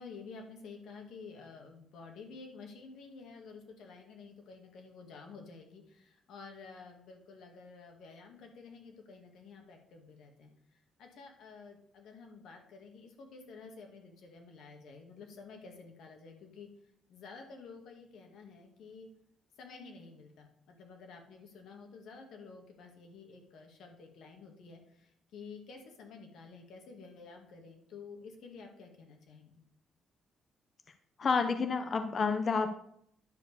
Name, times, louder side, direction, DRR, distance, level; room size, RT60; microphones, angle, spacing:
voice 1, 0.0-16.7 17.1-19.1 19.6-29.6, left 4 dB, 75° left, 3 dB, 2.1 m, -51 dB
voice 2, 31.2-32.7, left 5 dB, 45° left, 8 dB, 0.7 m, -29 dB
10.5 x 4.7 x 6.8 m, 0.70 s
cardioid pair, 90°, 0 cm